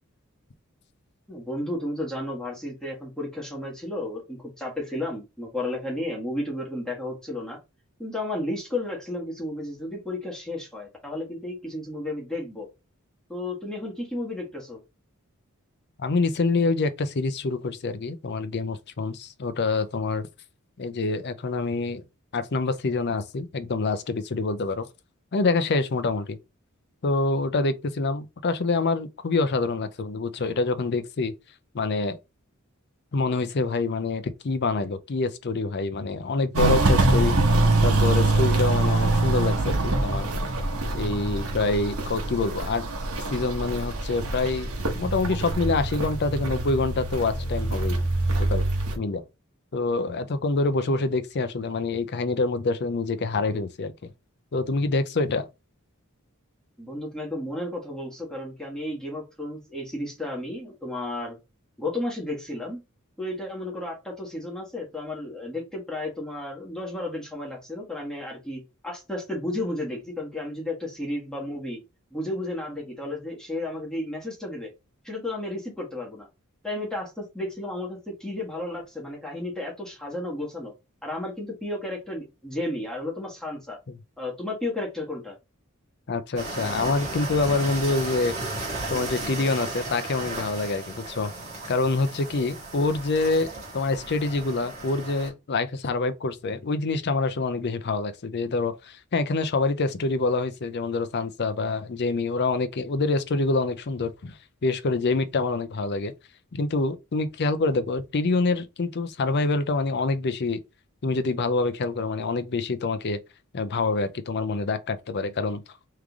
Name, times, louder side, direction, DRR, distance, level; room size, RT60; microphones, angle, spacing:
voice 1, 1.3-7.6 8.0-12.7 13.3-14.8 56.8-61.4 61.8-62.8 63.2-71.8 72.1-74.7 75.0-76.3 76.6-80.7 81.0-83.8 84.2-85.4, left 1 dB, 5° left, 1.4 m, -33 dB
voice 2, 16.0-20.3 20.8-22.0 22.3-24.9 25.3-26.4 27.0-31.3 31.7-32.2 33.1-37.4 37.8-40.3 40.9-42.8 43.3-48.0 48.4-48.6 49.0-49.2 49.7-54.1 54.5-55.5 86.1-88.3 88.9-91.3 91.7-93.5 93.7-106.1 106.5-110.6 111.0-113.2 113.5-115.6, left 3 dB, 50° left, 0.5 m, -26 dB
Walk footsteps, 36.5-48.9, right 2 dB, 85° right, 1.2 m, -24 dB
sound 1, 86.4-95.3, right 2 dB, 30° right, 1.6 m, -35 dB
3.7 x 3.2 x 3.5 m
head